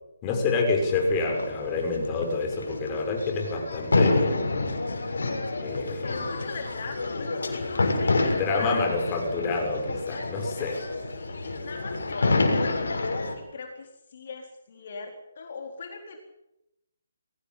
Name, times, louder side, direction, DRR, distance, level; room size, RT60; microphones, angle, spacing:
voice 1, 0.2-4.4 5.6-6.2 8.4-10.8, left 3 dB, 20° left, 3 dB, 6.6 m, -28 dB
Fireworks-Crowd, 0.8-13.3, left 2 dB, 75° left, 6.6 m, -28 dB
voice 2, 5.7-8.8 10.6-16.2, left 4 dB, 50° left, 3 dB, 4.2 m, -41 dB
23.0 x 17.5 x 8.8 m, 0.85 s
hypercardioid pair, 155°, 0 cm